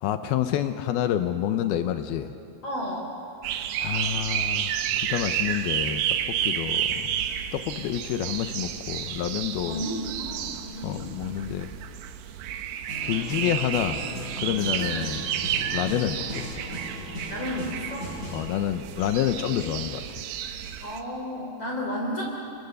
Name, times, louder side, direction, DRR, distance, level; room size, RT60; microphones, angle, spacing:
voice 1, 0.0-2.3 3.8-6.0 6.3-7.1 7.5-9.8 10.8-11.7 13.0-14.1 14.4-15.2 15.7-16.7 18.3-20.2, left 11 dB, 85° left, 9 dB, 2.2 m, -28 dB
voice 2, 2.6-3.1 9.6-11.3 14.9-15.1 17.3-18.1 20.8-22.2, equal, 35° left, -2 dB, 3.8 m, -33 dB
sound 1, 3.4-21.0, right 10 dB, 75° right, 2.9 m, -31 dB
sound 2, 12.9-18.5, equal, 15° left, 6.6 m, -38 dB
29.0 x 24.0 x 6.9 m, 2.5 s
omnidirectional pair, 5.4 m